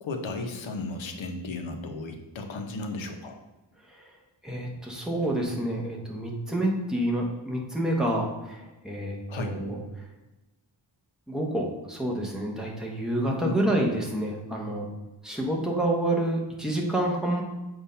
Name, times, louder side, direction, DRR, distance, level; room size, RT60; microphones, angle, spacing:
voice 1, 0.0-3.4 9.3-9.5 13.4-13.6, left 2 dB, 80° left, 5 dB, 0.9 m, -34 dB
voice 2, 4.4-10.1 11.3-14.9 15.2-17.4, right 1 dB, ahead, -2 dB, 1.0 m, -28 dB
7.0 x 2.7 x 5.5 m, 1.1 s
wide cardioid pair, 165°, 46 cm